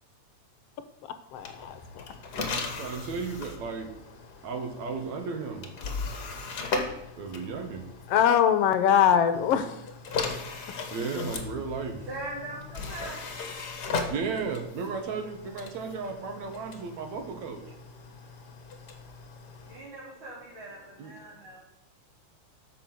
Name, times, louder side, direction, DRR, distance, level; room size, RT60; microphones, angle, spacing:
voice 1, 1.0-2.1 8.1-9.9 11.2-11.4, left 9 dB, 70° left, 11 dB, 1.6 m, -23 dB
sound 1, 1.3-8.3 9.3-19.8, left 4 dB, 45° left, 1.5 m, -37 dB
voice 2, 2.7-3.9 4.4-5.7 7.1-7.8 10.9-12.1 14.1-17.6 21.0-21.1, right 5 dB, 75° right, 6 dB, 2.8 m, -34 dB
voice 3, 12.1-13.5 19.6-21.6, right 2 dB, 45° right, -5 dB, 3.3 m, -41 dB
13.0 x 6.2 x 7.7 m, 0.88 s
omnidirectional pair, 3.3 m